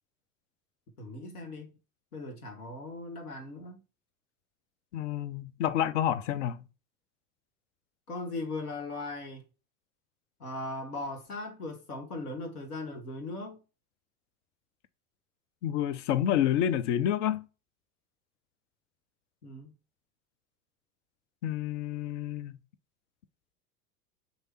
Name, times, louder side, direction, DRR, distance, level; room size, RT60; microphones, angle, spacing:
voice 1, 1.0-1.8 2.1-3.8 8.1-9.4 10.4-13.6 19.4-19.7, left 2 dB, 75° left, 1.2 m, -38 dB
voice 2, 4.9-6.6 15.6-17.5 21.4-22.5, left 10 dB, 55° left, 0.5 m, -29 dB
3.2 x 2.7 x 4.2 m
figure-of-eight pair, 80°, 47 cm